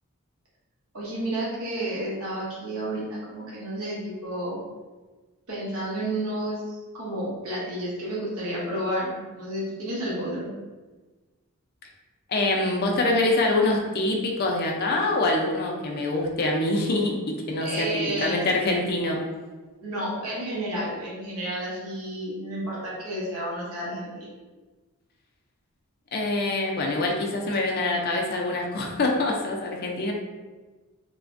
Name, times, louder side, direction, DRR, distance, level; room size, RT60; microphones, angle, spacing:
voice 1, 0.9-4.6 5.5-10.5 17.6-18.3 19.8-24.3, right 1 dB, 75° right, -6 dB, 1.0 m, -31 dB
voice 2, 12.3-19.2 26.1-30.1, left 2 dB, 45° left, 0 dB, 0.4 m, -25 dB
3.2 x 2.1 x 2.5 m, 1.3 s
head